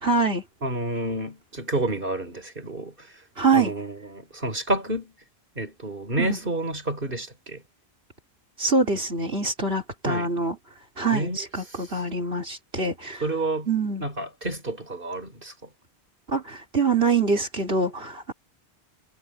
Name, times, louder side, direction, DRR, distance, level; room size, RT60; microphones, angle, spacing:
voice 1, 0.0-0.4 3.4-3.7 6.2-6.4 8.6-10.6 11.0-13.2 13.7-14.0 16.3-18.3, right 4 dB, 75° right, 4.4 m, -24 dB
voice 2, 0.6-3.1 3.5-5.1 5.6-7.6 10.1-10.3 11.1-11.4 11.7-11.8 13.2-13.7 14.0-15.7, right 2 dB, 60° right, 3.9 m, -29 dB
omnidirectional pair, 1.0 m